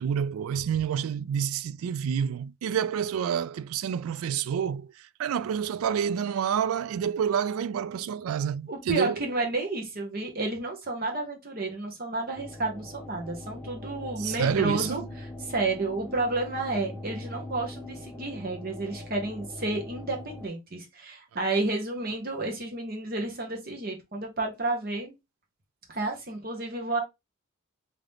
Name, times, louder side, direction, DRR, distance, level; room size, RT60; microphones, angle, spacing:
voice 1, 0.0-4.9 5.2-9.2 14.2-15.0, right 8 dB, 85° right, 0.3 m, -28 dB
voice 2, 8.7-15.0 15.4-25.1 25.9-27.0, right 2 dB, 45° right, 1.2 m, -31 dB
sound 1, 12.3-20.5, left 1 dB, 10° left, 0.5 m, -41 dB
3.7 x 2.9 x 3.3 m
head